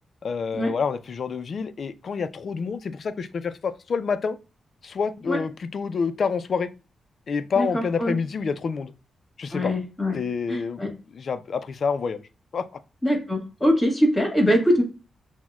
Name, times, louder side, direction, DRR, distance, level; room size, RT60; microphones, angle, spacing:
voice 1, 0.2-4.4 4.8-6.7 7.3-8.9 9.4-9.7 10.1-12.7, left 5 dB, 60° left, 13 dB, 0.3 m, -28 dB
voice 2, 7.6-8.2 9.5-10.2 10.5-10.9 13.0-14.8, equal, 20° left, 1 dB, 1.7 m, -22 dB
5.9 x 2.1 x 2.3 m, 0.32 s
cardioid pair, 80°, 0 cm